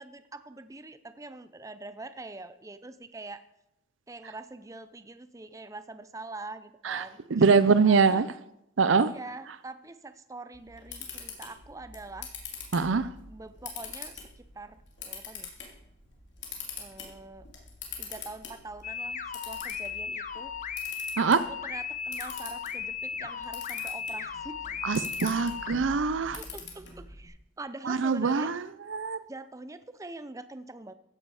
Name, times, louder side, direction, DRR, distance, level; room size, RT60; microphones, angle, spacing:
voice 1, 0.0-3.5 4.1-7.2 7.8-8.2 9.0-12.3 13.3-15.5 16.8-17.5 18.0-20.5 21.5-24.7 26.4-28.5 29.3-30.9, right 2 dB, 15° right, 0.5 m, -44 dB
voice 2, 6.8-8.3 8.8-9.1 12.7-13.1 21.2-21.4 24.8-26.4 27.8-29.2, right 5 dB, 85° right, 0.6 m, -24 dB
Camera, 10.5-27.3, left 6 dB, 70° left, 3.1 m, -44 dB
sound 1, 18.8-25.7, left 6 dB, 40° left, 0.6 m, -36 dB
15.5 x 9.5 x 4.9 m
head